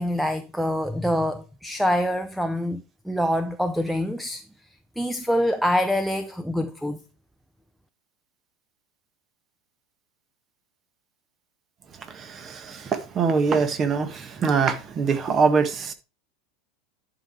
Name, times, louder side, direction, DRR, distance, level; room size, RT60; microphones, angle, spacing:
voice 1, 0.0-4.4 5.0-7.0, equal, ahead, 0.7 m, -25 dB
voice 2, 12.0-15.9, right 5 dB, 30° right, 1.5 m, -23 dB
11.0 x 5.2 x 4.5 m
figure-of-eight pair, 80°, 0 cm